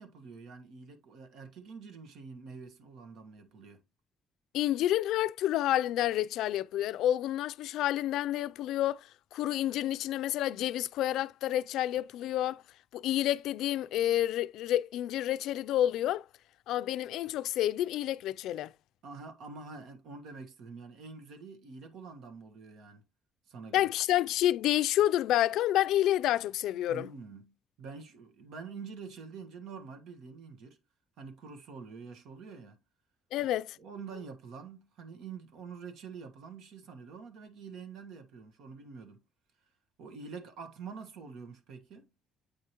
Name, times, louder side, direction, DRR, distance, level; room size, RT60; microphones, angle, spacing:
voice 1, 0.0-3.8 19.0-23.0 23.5-23.9 26.9-30.8 31.2-32.8 33.4-33.5 33.8-39.2 40.0-42.1, right 5 dB, 75° right, 1.3 m, -46 dB
voice 2, 4.5-12.6 12.9-16.2 16.7-18.7 23.7-27.1 33.3-33.8, left 13 dB, 85° left, 0.3 m, -29 dB
8.5 x 4.8 x 2.9 m
cardioid pair, 110°, 0 cm